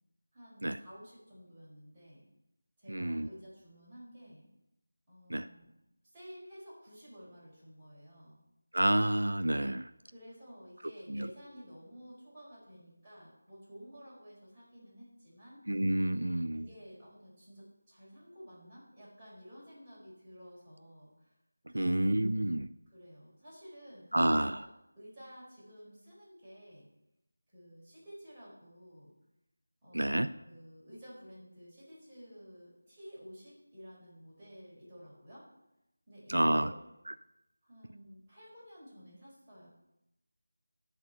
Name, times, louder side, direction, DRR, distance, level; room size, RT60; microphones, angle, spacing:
voice 1, 0.3-2.3 2.8-4.5 5.1-5.7 6.1-8.4 10.1-15.6 16.5-21.3 21.7-22.0 22.9-24.7 25.0-26.9 27.5-29.1 29.8-35.5 36.1-36.9 37.6-39.7, equal, 15° right, -11 dB, 4.4 m, -52 dB
voice 2, 2.9-3.3 5.3-5.5 8.7-9.9 11.1-11.3 15.7-16.7 21.7-22.7 24.1-24.6 29.9-30.3 36.3-36.7 37.1-37.2, right 1 dB, 90° right, 11 dB, 0.4 m, -29 dB
12.0 x 4.2 x 6.9 m, 0.89 s
figure-of-eight pair, 170°, 0 cm